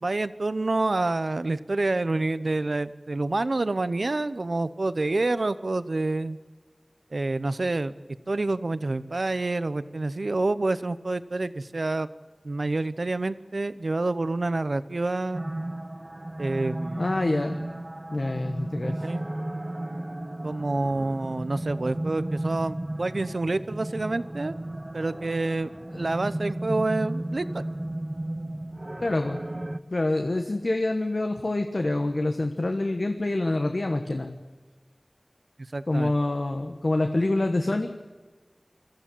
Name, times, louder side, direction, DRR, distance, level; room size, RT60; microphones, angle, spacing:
voice 1, 0.0-6.4 7.1-7.9 8.3-12.1 12.4-15.4 16.4-17.0 19.0-19.2 20.4-24.5 24.9-25.7 26.0-27.6 35.7-36.1, right 2 dB, 85° right, 14 dB, 0.8 m, -27 dB
sound 1, 15.3-29.8, right 1 dB, 35° right, 0.9 m, -34 dB
voice 2, 17.0-17.6 18.1-19.0 25.9-26.1 29.0-29.4 29.9-34.3 35.9-37.9, left 2 dB, 70° left, 5 dB, 1.3 m, -26 dB
22.0 x 14.0 x 8.5 m, 1.4 s
wide cardioid pair, 50°, 0 cm